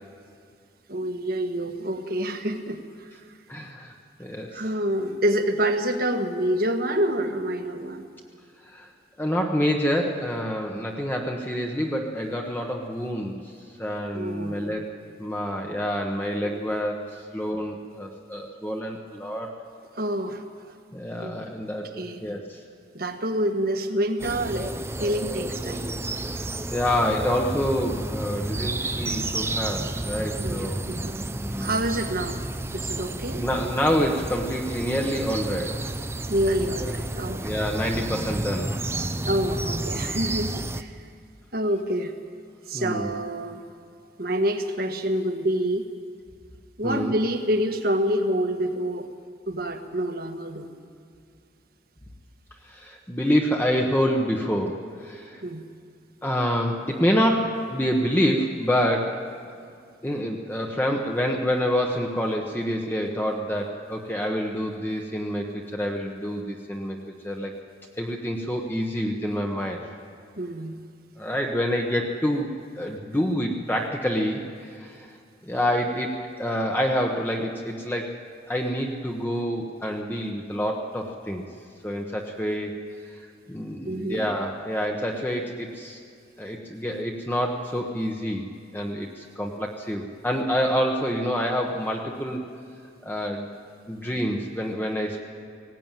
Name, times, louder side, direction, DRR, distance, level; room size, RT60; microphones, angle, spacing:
voice 1, 0.9-3.1 4.5-8.1 14.1-14.6 16.4-16.6 20.0-20.7 21.2-21.4 22.0-22.2 22.9-24.7 25.0-25.9 30.4-31.2 31.6-32.4 32.7-33.4 36.3-37.4 39.2-41.0 41.5-42.1 42.7-43.6 44.2-45.9 46.8-49.1 49.5-50.7 55.4-55.7 70.4-70.8 83.9-84.3, right 1 dB, 50° right, 7 dB, 1.5 m, -27 dB
voice 2, 3.5-4.6 8.7-8.9 9.2-13.5 13.8-14.9 15.2-19.6 20.9-22.6 26.2-26.4 26.7-30.9 31.3-31.7 33.4-35.8 36.8-36.9 37.4-38.7 42.7-43.1 46.8-47.1 52.6-55.4 56.2-59.2 60.0-67.5 68.0-69.8 71.2-72.5 72.8-75.1 75.4-78.1 78.5-81.4 81.8-82.7 83.1-86.0 86.4-88.5 88.7-92.4 93.0-93.5 93.9-95.2, equal, 10° left, 1 dB, 1.2 m, -27 dB
sound 1, 24.2-40.8, right 2 dB, 15° right, 0.6 m, -31 dB
18.5 x 17.5 x 9.1 m, 2.3 s
head